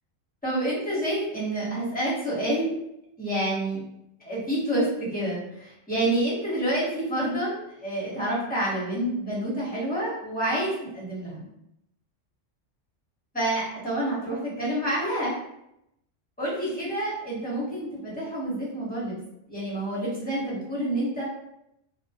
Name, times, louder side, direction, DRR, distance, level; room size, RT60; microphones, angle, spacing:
voice 1, 0.4-2.7 3.2-3.8 4.2-11.5 13.3-15.3 16.4-19.2 19.5-21.2, right 1 dB, 10° left, -8 dB, 0.8 m, -28 dB
2.2 x 2.1 x 2.7 m, 0.81 s
omnidirectional pair, 1.3 m